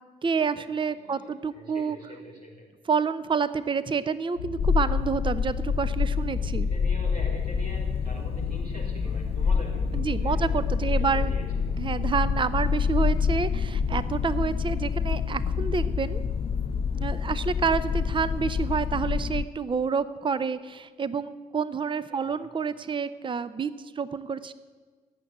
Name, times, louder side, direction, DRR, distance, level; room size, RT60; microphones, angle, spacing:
voice 1, 0.2-2.0 2.9-6.7 9.9-11.3 11.8-16.2 16.9-24.5, right 5 dB, 25° right, 15 dB, 0.7 m, -28 dB
voice 2, 0.9-2.7 6.7-10.4 10.8-11.7 22.1-22.4, equal, 90° right, -2 dB, 2.3 m, -44 dB
sound 1, 4.4-16.8, left 6 dB, 85° left, 0.8 m, -37 dB
sound 2, 4.6-19.4, left 6 dB, 30° left, 0.5 m, -27 dB
15.0 x 8.2 x 9.2 m, 1.4 s
figure-of-eight pair, 40°, 20 cm